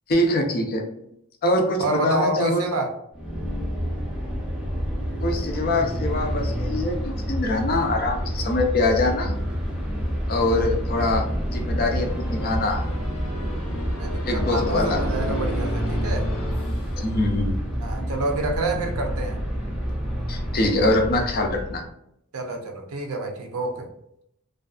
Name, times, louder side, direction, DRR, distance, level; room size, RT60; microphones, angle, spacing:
voice 1, 0.1-0.8 1.4-2.6 5.2-9.4 10.3-12.8 14.3-15.0 17.0-17.6 20.3-21.8, left 2 dB, 45° left, 2 dB, 0.5 m, -24 dB
voice 2, 1.8-2.9 14.0-16.3 17.8-19.4 22.3-23.9, right 2 dB, 75° right, 3 dB, 0.5 m, -28 dB
sound 1, 3.1-21.9, equal, 5° right, 0.5 m, -28 dB
sound 2, 12.0-17.7, left 1 dB, 90° left, 0.6 m, -38 dB
2.5 x 2.3 x 2.3 m, 0.76 s
head